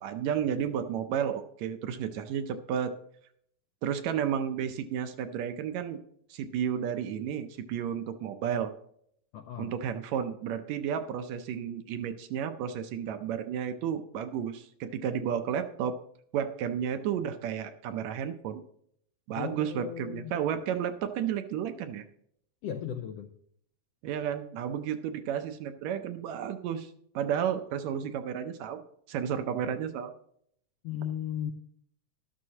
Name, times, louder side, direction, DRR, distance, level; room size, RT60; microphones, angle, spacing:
voice 1, 0.0-2.9 3.8-6.0 6.3-8.7 9.6-16.0 16.3-18.6 19.3-22.1 24.0-26.9 27.2-30.1, right 8 dB, 75° right, 8 dB, 1.8 m, -32 dB
voice 2, 9.3-9.7 19.4-20.3 22.6-23.3 30.8-31.5, left 9 dB, 85° left, 7 dB, 1.4 m, -36 dB
12.5 x 12.5 x 2.8 m, 0.68 s
omnidirectional pair, 3.5 m